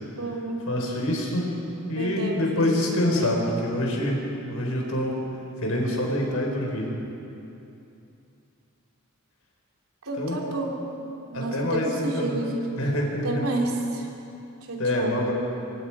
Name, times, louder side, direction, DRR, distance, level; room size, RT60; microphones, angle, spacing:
voice 1, 0.1-0.7 1.9-2.8 3.1-3.3 10.0-12.7 13.2-14.1 14.7-15.1, right 2 dB, 75° right, 0 dB, 3.3 m, -30 dB
voice 2, 0.7-1.5 1.9-5.2 5.6-6.9 10.2-10.4 11.3-12.4 12.7-13.5 14.8-15.3, left 1 dB, 75° left, 0 dB, 4.8 m, -26 dB
25.5 x 23.5 x 5.0 m, 2.8 s
head